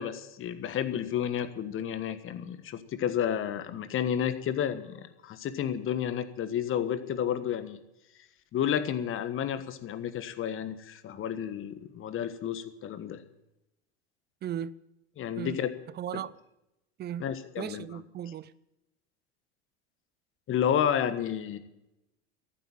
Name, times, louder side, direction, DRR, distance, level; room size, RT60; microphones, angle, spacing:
voice 1, 0.0-7.8 8.5-13.2 15.2-15.7 17.2-17.9 20.5-21.6, left 9 dB, 40° left, 1.4 m, -31 dB
voice 2, 14.4-14.7 15.4-15.6 15.9-16.4 17.0-17.3 17.6-18.5, right 10 dB, 30° right, 0.6 m, -36 dB
14.0 x 8.2 x 8.8 m
hypercardioid pair, 80°, 33 cm